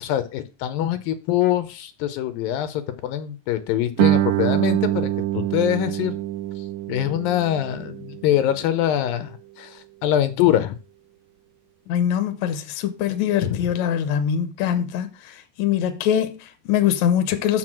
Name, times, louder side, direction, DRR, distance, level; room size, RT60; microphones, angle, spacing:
voice 1, 0.0-6.2 6.9-10.8 13.4-13.6, left 12 dB, 80° left, 2.5 m, -24 dB
Guitar, 4.0-9.3, right 14 dB, 75° right, 2.2 m, -25 dB
voice 2, 11.9-17.6, left 9 dB, 65° left, 2.1 m, -23 dB
7.1 x 6.1 x 6.1 m
omnidirectional pair, 4.1 m